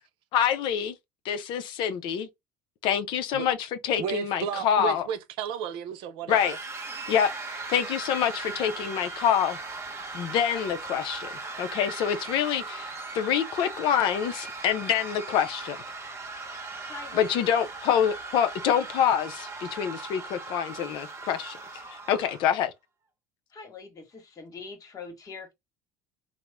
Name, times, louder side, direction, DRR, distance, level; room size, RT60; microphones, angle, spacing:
voice 1, 0.3-0.9 1.2-2.3 2.8-3.6 3.8-5.0 6.3-6.6 7.1-9.6 10.1-11.3 11.6-12.9 13.1-15.8 17.1-21.6 22.1-22.7, left 9 dB, 55° left, 0.5 m, -26 dB
voice 2, 4.0-6.6, right 8 dB, 60° right, 0.5 m, -33 dB
sound 1, 6.3-22.6, right 3 dB, 30° right, 0.9 m, -38 dB
voice 3, 16.8-17.4 23.5-25.5, left 4 dB, 40° left, 1.1 m, -43 dB
2.9 x 2.0 x 3.4 m
hypercardioid pair, 70°, 9 cm